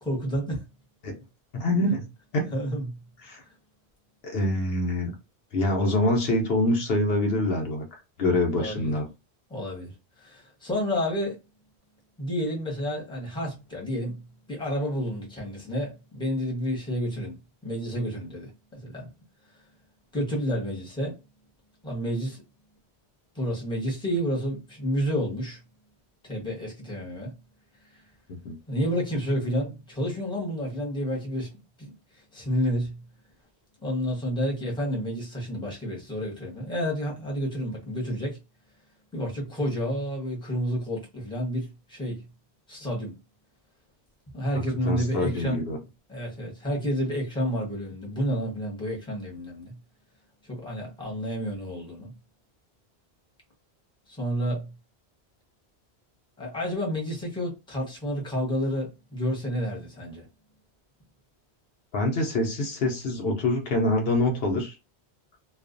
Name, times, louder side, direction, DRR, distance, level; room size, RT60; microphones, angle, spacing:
voice 1, 0.0-0.7 2.5-3.0 8.5-8.9 9.5-9.9 10.2-11.4 12.2-17.4 17.6-19.1 20.1-21.1 21.8-22.4 23.3-25.6 26.2-27.3 28.7-31.5 31.8-33.0 33.8-38.4 39.1-42.2 42.7-43.2 44.3-45.6 46.1-49.8 50.4-52.1 54.1-54.7 56.4-60.2, equal, 5° left, 0.9 m, -30 dB
voice 2, 1.5-2.0 2.3-2.5 3.2-3.4 4.2-5.1 5.5-7.8 8.2-9.1 28.4-28.5 44.8-45.8 61.9-64.8, left 1 dB, 65° left, 0.8 m, -25 dB
2.4 x 2.3 x 2.4 m
omnidirectional pair, 1.1 m